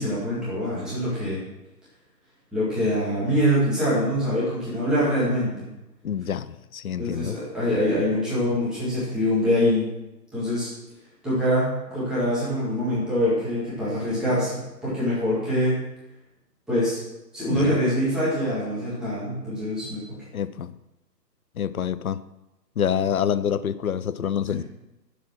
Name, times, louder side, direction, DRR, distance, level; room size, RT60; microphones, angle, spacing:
voice 1, 0.0-1.4 2.5-5.7 7.0-9.9 10.3-10.7 11.2-15.8 16.7-17.0 17.3-20.2 24.5-24.6, equal, ahead, 1.9 m, -24 dB
voice 2, 6.0-7.4 17.5-17.8 20.3-20.7 21.6-22.2 22.8-24.6, left 8 dB, 60° left, 0.6 m, -27 dB
10.5 x 7.2 x 6.1 m
hypercardioid pair, 170°, 50 cm